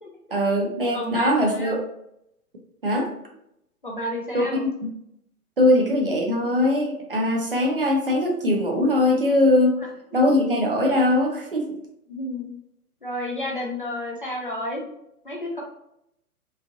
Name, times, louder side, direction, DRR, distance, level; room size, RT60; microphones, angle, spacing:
voice 1, 0.3-1.8 2.8-3.1 4.3-4.9 5.6-9.7 10.1-11.8, left 1 dB, 40° right, 0 dB, 0.4 m, -21 dB
voice 2, 0.9-1.8 3.8-4.7 12.1-12.5 13.0-14.8 15.2-15.6, left 1 dB, 35° left, -2 dB, 0.4 m, -31 dB
3.0 x 2.5 x 2.4 m, 0.78 s
figure-of-eight pair, 125°, 46 cm